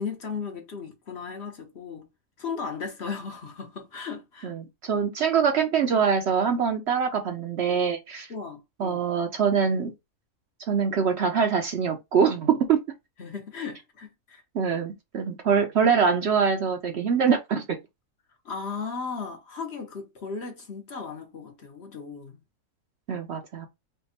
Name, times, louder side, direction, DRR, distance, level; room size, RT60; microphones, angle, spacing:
voice 1, 0.0-2.1 2.4-4.5 8.3-9.0 13.2-14.4 18.4-22.4, left 5 dB, 55° left, 1.1 m, -36 dB
voice 2, 4.4-8.3 8.8-9.9 10.7-12.8 14.5-17.8 23.1-23.7, right 6 dB, 60° right, 0.8 m, -24 dB
3.4 x 2.3 x 4.1 m
omnidirectional pair, 1.5 m